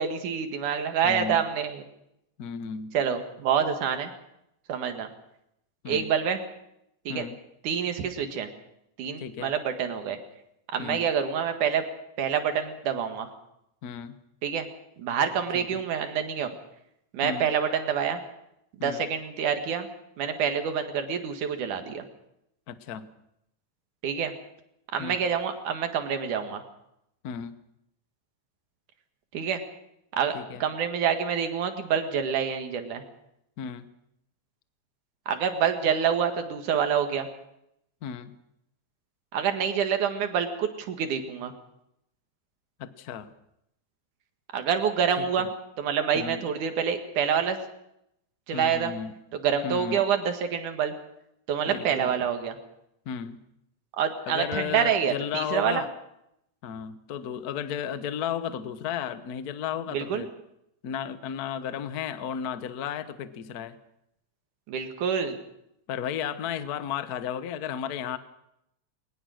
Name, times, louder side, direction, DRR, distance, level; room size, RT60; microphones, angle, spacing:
voice 1, 0.0-1.8 2.9-4.1 4.7-5.1 5.9-6.4 7.1-7.2 7.6-8.5 9.0-10.2 10.7-11.8 12.2-13.3 14.4-14.7 15.0-16.5 17.1-18.2 18.8-19.9 20.2-22.0 24.0-24.3 24.9-26.6 29.3-29.6 30.1-30.3 30.6-33.0 35.3-37.3 39.3-41.5 44.5-45.5 45.8-47.6 48.5-48.9 49.3-50.9 51.5-52.6 54.0-55.8 59.9-60.2 64.7-65.4, right 7 dB, 90° right, 7 dB, 3.3 m, -27 dB
voice 2, 1.0-1.4 2.4-2.9 5.8-6.1 7.1-7.4 9.2-9.5 10.8-11.1 13.8-14.2 15.5-15.8 17.2-17.5 18.8-19.1 22.7-23.1 25.0-25.2 27.2-27.6 30.3-30.7 33.6-33.9 38.0-38.3 42.8-43.3 45.2-45.5 46.1-46.4 48.5-49.1 49.6-50.0 51.6-52.1 53.0-53.4 54.3-55.9 56.6-60.3 60.8-63.8 65.9-68.2, left 8 dB, 90° left, 12 dB, 0.8 m, -34 dB
21.5 x 20.0 x 6.4 m, 0.79 s
omnidirectional pair, 3.4 m